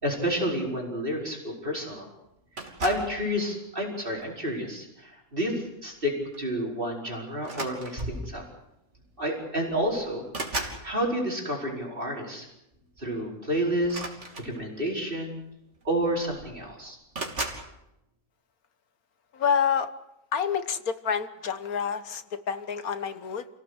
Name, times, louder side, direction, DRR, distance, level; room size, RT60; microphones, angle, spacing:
voice 1, 0.0-2.1 2.8-8.4 9.2-10.3 10.5-12.5 13.0-14.1 14.4-15.4 15.9-17.0, equal, 40° right, -1 dB, 5.3 m, -30 dB
sound 1, 2.6-3.2 4.1-4.4 5.9-6.0 6.3-6.5 7.4-8.3 9.3-9.4 9.7-10.9 13.8-14.9 15.8-15.9 16.1-16.7 17.1-17.7, right 2 dB, 55° right, 3.5 m, -36 dB
voice 2, 19.3-19.9 20.3-23.5, left 7 dB, 85° left, 11 dB, 1.8 m, -28 dB
29.0 x 17.0 x 8.2 m, 0.86 s
omnidirectional pair, 1.5 m